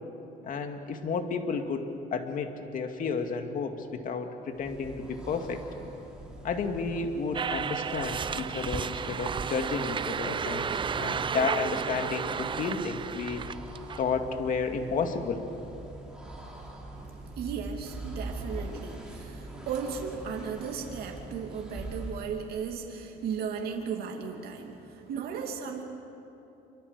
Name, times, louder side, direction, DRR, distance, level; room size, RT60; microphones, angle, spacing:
voice 1, 0.4-5.6 6.4-13.4 14.0-15.5, left 5 dB, 55° left, 5 dB, 2.3 m, -32 dB
sound 1, 4.5-22.3, right 2 dB, 5° right, 5.3 m, -43 dB
sound 2, 7.3-14.0, right 7 dB, 30° right, 0.5 m, -32 dB
voice 2, 17.0-25.8, right 6 dB, 65° right, 1 dB, 2.6 m, -36 dB
26.5 x 24.0 x 6.8 m, 3.0 s
cardioid pair, 110°, 17 cm